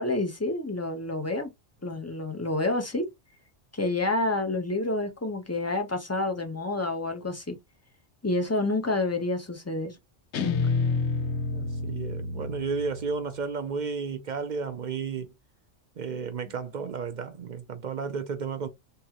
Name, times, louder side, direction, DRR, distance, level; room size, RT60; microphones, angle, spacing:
voice 1, 0.0-1.5 1.8-3.0 3.7-7.6 8.2-9.9 10.4-10.6 12.3-12.4, left 2 dB, 15° left, 0.7 m, -28 dB
Guitar, 10.3-13.5, left 4 dB, 70° left, 1.0 m, -29 dB
voice 2, 11.5-15.3 16.0-18.7, right 5 dB, 60° right, 0.5 m, -33 dB
3.8 x 2.9 x 2.9 m
omnidirectional pair, 1.3 m